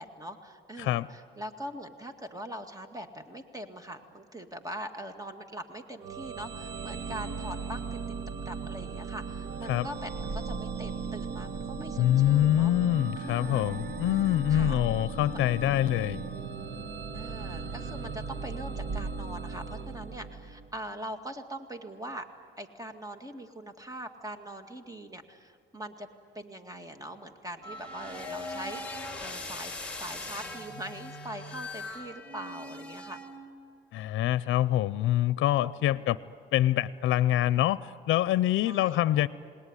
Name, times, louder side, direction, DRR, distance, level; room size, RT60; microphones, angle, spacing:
voice 1, 0.0-8.2 8.5-12.7 13.2-13.7 14.5-14.8 17.1-22.3 22.6-26.1 26.3-29.7 30.0-33.2 35.8-36.2 38.6-39.0, right 1 dB, 15° right, 7 dB, 2.1 m, -42 dB
sound 1, 6.0-20.7, right 4 dB, 65° right, 1.6 m, -37 dB
voice 2, 12.0-16.2 33.9-36.2 36.5-39.3, left 13 dB, 80° left, 17 dB, 0.6 m, -25 dB
sound 2, 27.6-33.6, left 2 dB, 5° left, 4.3 m, -40 dB
27.5 x 19.5 x 9.9 m, 2.3 s
cardioid pair, 90°, 20 cm